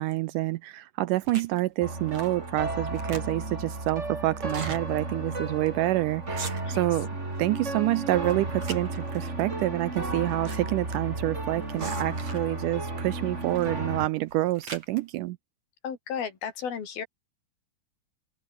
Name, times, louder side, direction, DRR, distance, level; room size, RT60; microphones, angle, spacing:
voice 1, 0.0-7.1 7.4-15.4, right 17 dB, 80° right, 1.9 m, -28 dB
sound 1, 1.2-1.6 2.1-2.4 2.7-3.6 4.4-4.8 5.3-5.4 5.7-5.9 6.2-6.9 7.3-7.8 8.2-9.2 10.0-10.6 10.8-10.9 11.8-12.6 13.4-13.7 14.2-15.0, right 4 dB, 45° right, 6.7 m, -41 dB
sound 2, 1.8-14.1, right 2 dB, 20° right, 4.3 m, -33 dB
voice 2, 15.8-17.1, left 7 dB, 90° left, 5.3 m, -34 dB
open air
omnidirectional pair, 4.2 m